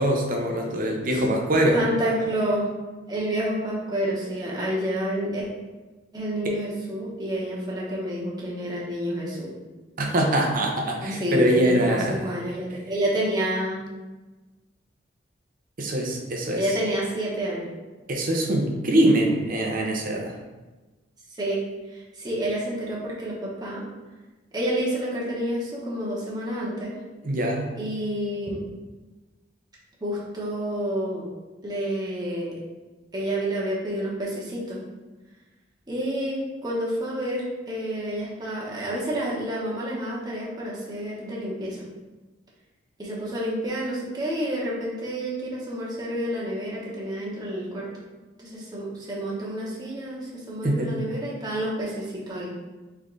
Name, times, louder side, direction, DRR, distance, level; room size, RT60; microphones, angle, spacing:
voice 1, 0.0-1.8 10.0-12.3 15.8-16.7 18.1-20.4 27.2-27.7 50.6-50.9, right 1 dB, 45° right, 0 dB, 0.8 m, -23 dB
voice 2, 1.7-2.7 3.1-5.5 6.1-9.5 11.0-13.8 16.5-17.7 21.4-23.8 24.5-27.0 27.8-28.6 30.0-31.3 31.6-32.6 33.1-34.8 35.9-41.8 43.0-47.9 48.4-52.5, equal, 20° right, -6 dB, 1.1 m, -29 dB
3.6 x 3.5 x 3.8 m, 1.2 s
head